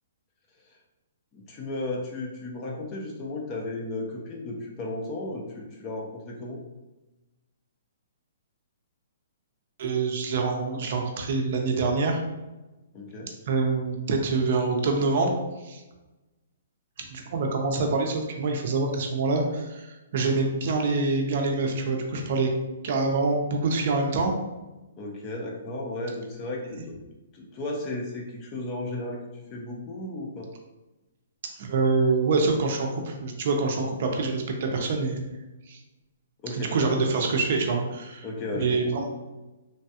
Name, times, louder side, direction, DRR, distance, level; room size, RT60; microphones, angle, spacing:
voice 1, 1.3-6.6 12.9-13.3 25.0-27.0 27.3-29.2 29.5-30.5 36.4-36.7 38.2-38.8, left 2 dB, 25° left, -1 dB, 0.5 m, -34 dB
voice 2, 9.8-12.2 13.5-15.3 15.6-15.8 17.0-22.5 22.8-24.3 31.6-35.2 35.7-35.8 36.5-38.3 38.6-39.1, right 3 dB, 50° right, 2 dB, 0.5 m, -25 dB
3.2 x 2.2 x 2.7 m, 1.1 s
hypercardioid pair, 165°, 0 cm